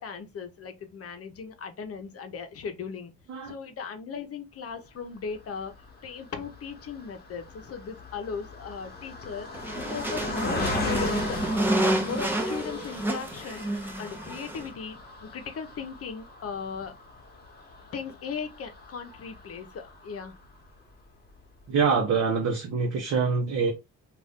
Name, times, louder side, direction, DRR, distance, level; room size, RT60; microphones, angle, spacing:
voice 1, 0.0-3.1 3.4-5.7 6.0-9.5 9.8-11.4 11.7-17.0 17.9-20.4, left 6 dB, 50° left, 0.7 m, -37 dB
Car passing by, 5.3-20.8 21.3-21.4 21.6-21.8, left 3 dB, 35° left, 1.1 m, -39 dB
sound 1, 9.5-14.7, right 1 dB, 5° right, 0.6 m, -29 dB
voice 2, 21.7-23.7, right 5 dB, 55° right, 0.8 m, -25 dB
2.5 x 2.4 x 3.5 m
cardioid pair, 90°, 30 cm